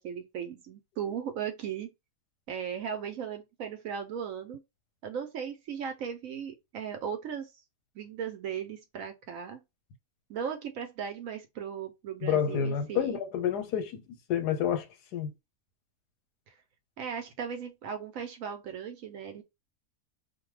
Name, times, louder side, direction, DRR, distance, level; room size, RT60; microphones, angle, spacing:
voice 1, 0.0-1.9 2.5-4.6 5.0-7.5 7.9-9.6 10.3-13.2 16.5-16.6 17.0-19.4, right 7 dB, 65° right, 0.9 m, -37 dB
voice 2, 12.2-14.0 14.3-14.9 15.1-15.3, left 8 dB, 90° left, 1.3 m, -28 dB
2.6 x 2.2 x 3.1 m
omnidirectional pair, 1.7 m